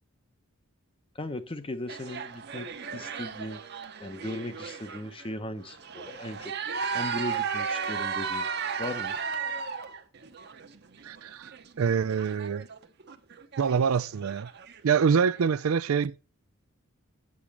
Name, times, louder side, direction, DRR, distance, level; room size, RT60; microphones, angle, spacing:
voice 1, 1.2-3.6 4.0-6.6 6.9-8.5 8.8-9.2, left 1 dB, 25° left, 0.8 m, -37 dB
sound 1, 1.9-5.3 5.6-15.0 15.3-15.5, right 6 dB, 50° right, 0.9 m, -35 dB
voice 2, 11.0-12.7 13.6-14.5 14.8-16.2, right 6 dB, 80° right, 0.4 m, -25 dB
8.6 x 6.2 x 7.3 m
head